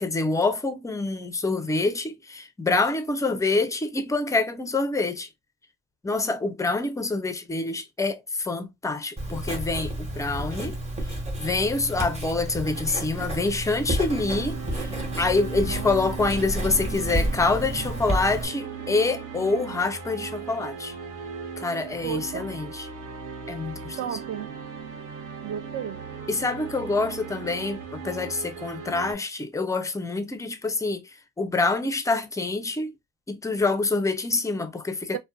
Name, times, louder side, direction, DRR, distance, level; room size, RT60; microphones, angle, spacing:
voice 1, 0.0-5.3 6.0-10.8 11.4-14.9 15.2-20.9 21.6-22.9 23.5-24.0 26.3-31.0 31.4-32.9 33.3-35.2, left 3 dB, 10° left, 0.4 m, -26 dB
Writing, 9.2-18.5, right 1 dB, 20° right, 1.1 m, -31 dB
sound 1, 14.0-29.1, right 6 dB, 80° right, 0.8 m, -38 dB
voice 2, 22.0-22.4 24.0-24.6 25.4-26.0 35.1-35.2, right 9 dB, 50° right, 0.4 m, -33 dB
2.5 x 2.2 x 2.3 m
cardioid pair, 90°, 30 cm